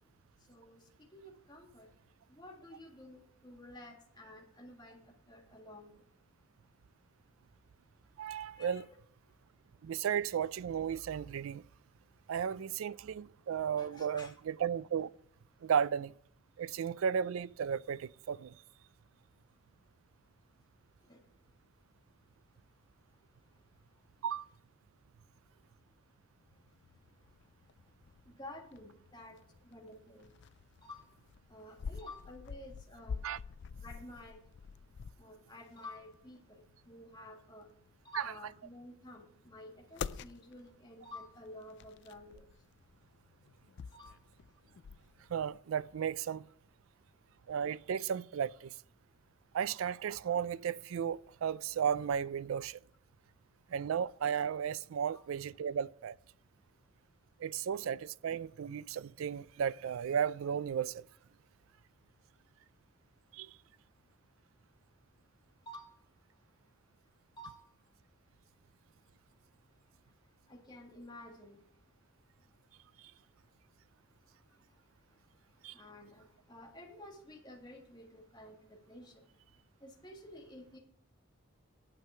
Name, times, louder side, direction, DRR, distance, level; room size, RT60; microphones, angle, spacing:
voice 1, 0.5-1.9 2.3-6.0 8.5-8.8 13.8-14.4 21.1-21.2 28.3-29.4 29.6-30.3 30.8-31.1 31.5-33.2 33.8-34.4 35.2-37.7 38.0-42.5 43.9-44.2 55.0-55.2 65.7-65.9 67.4-67.6 70.5-71.6 75.7-79.2 79.8-80.8, left 1 dB, 20° left, 1.8 m, -51 dB
voice 2, 8.2-8.8 9.8-11.6 12.3-15.1 15.6-16.1 16.6-18.6 24.2-24.4 33.2-33.4 38.1-38.3 45.3-46.4 47.5-48.7 49.5-52.8 53.7-56.2 57.4-61.1 63.3-63.6 73.0-73.1 75.6-75.7, right 8 dB, 75° right, 0.3 m, -34 dB
sound 1, 26.5-45.6, left 6 dB, 55° left, 0.3 m, -48 dB
9.1 x 7.5 x 5.6 m
head